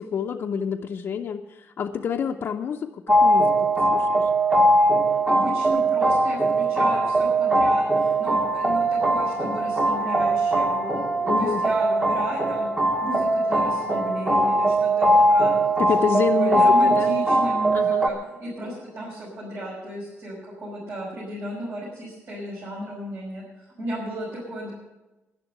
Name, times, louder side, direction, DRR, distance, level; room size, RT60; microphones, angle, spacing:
voice 1, 0.0-4.3 11.2-11.6 15.8-17.1 17.7-18.1, left 7 dB, 50° left, 2 dB, 0.6 m, -28 dB
sound 1, 3.1-18.1, right 1 dB, 20° right, 1.3 m, -21 dB
voice 2, 5.1-11.0 11.4-12.7 13.0-15.6 16.0-24.7, equal, 55° right, -6 dB, 5.7 m, -34 dB
12.0 x 11.0 x 8.0 m, 1.1 s
wide cardioid pair, 165°, 5 cm